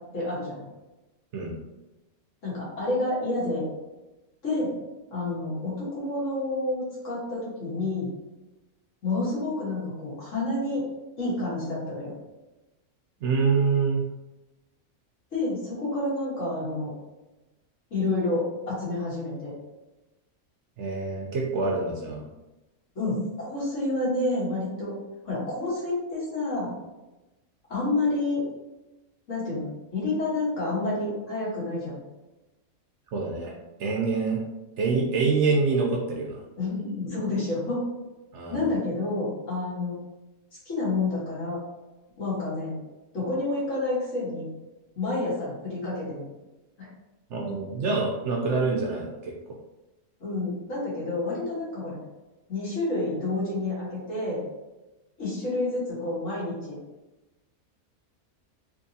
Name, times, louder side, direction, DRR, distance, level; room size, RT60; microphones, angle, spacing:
voice 1, 0.1-0.7 2.4-3.7 4.4-4.7 5.1-8.1 9.0-10.8 11.2-12.1 15.3-16.9 17.9-19.6 23.0-24.9 25.2-26.7 27.7-28.4 29.3-32.0 36.6-37.8 38.5-40.0 40.7-41.6 42.2-42.8 43.1-44.5 45.0-46.3 46.8-46.9 50.2-52.0 52.5-54.4 55.2-56.8, left 2 dB, 60° left, -8 dB, 1.8 m, -29 dB
voice 2, 13.2-14.0 20.8-22.2 33.1-33.5 33.8-34.4 34.8-36.4 38.3-38.7 47.3-49.3, right 4 dB, 65° right, -1 dB, 0.8 m, -26 dB
3.5 x 3.1 x 2.7 m, 1.0 s
omnidirectional pair, 1.5 m